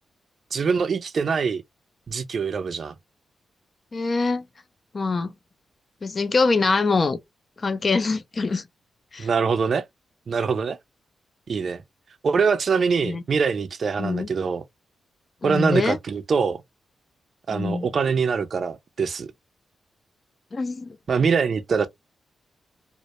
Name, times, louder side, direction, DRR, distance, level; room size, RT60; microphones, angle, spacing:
voice 1, 0.5-1.6 2.1-2.9 9.2-9.8 10.3-10.8 11.5-11.8 12.2-14.6 15.4-16.6 17.5-19.3 21.1-21.9, right 5 dB, 60° right, 0.4 m, -23 dB
voice 2, 3.9-4.4 4.9-5.3 6.0-7.2 7.6-8.6 9.1-9.3 13.0-13.2 14.0-14.3 15.4-16.0 17.5-17.9 20.5-20.9, left 4 dB, 45° left, 0.4 m, -24 dB
2.1 x 2.1 x 2.8 m
supercardioid pair, 45°, 0 cm